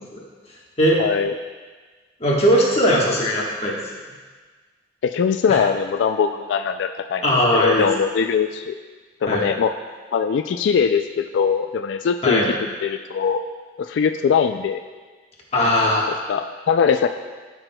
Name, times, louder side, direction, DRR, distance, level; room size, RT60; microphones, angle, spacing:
voice 1, 1.0-1.3 5.0-7.2 7.5-8.7 9.2-9.7 10.1-12.4 12.8-13.4 13.9-14.8 16.3-17.1, left 6 dB, 85° left, 6 dB, 0.3 m, -21 dB
voice 2, 2.2-3.7 5.5-5.6 7.2-7.8 9.3-9.4 12.2-12.5 15.5-16.1, equal, 35° left, -3 dB, 1.3 m, -19 dB
13.0 x 6.1 x 2.2 m, 1.4 s
head